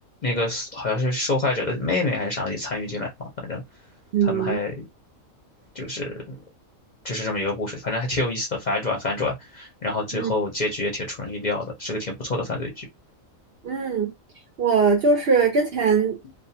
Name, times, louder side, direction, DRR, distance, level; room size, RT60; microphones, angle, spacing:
voice 1, 0.2-3.1 3.4-3.6 4.2-4.7 5.7-6.4 7.0-12.9, left 2 dB, 45° left, 0.6 m, -27 dB
voice 2, 4.1-4.6 10.1-10.3 13.6-14.1 14.6-16.1, right 5 dB, 55° right, 0.7 m, -21 dB
2.4 x 2.4 x 2.7 m
omnidirectional pair, 1.4 m